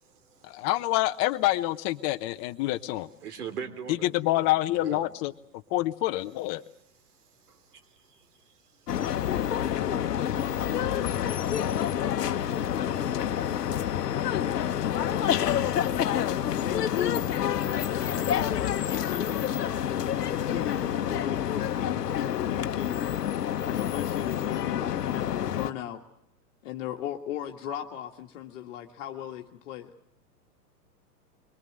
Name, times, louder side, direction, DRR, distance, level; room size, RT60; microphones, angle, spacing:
voice 1, 0.4-3.1 3.9-5.3 5.7-6.6, left 16 dB, 35° left, 8 dB, 0.9 m, -27 dB
voice 2, 3.2-4.5 4.7-5.1 7.5-8.3 8.7-8.9 10.1-10.3 13.7-14.1, right 7 dB, 70° right, 8 dB, 3.4 m, -41 dB
sound 1, 8.9-25.7, left 10 dB, 75° left, 1.2 m, -28 dB
voice 3, 8.9-13.6 14.1-17.9 18.7-19.7 20.3-23.0 23.6-26.0 26.6-29.9, left 11 dB, 50° left, 2 dB, 1.6 m, -38 dB
sound 2, 17.1-24.0, right 2 dB, ahead, 2.2 m, -54 dB
23.0 x 22.0 x 7.8 m, 0.75 s
hypercardioid pair, 110°, 48 cm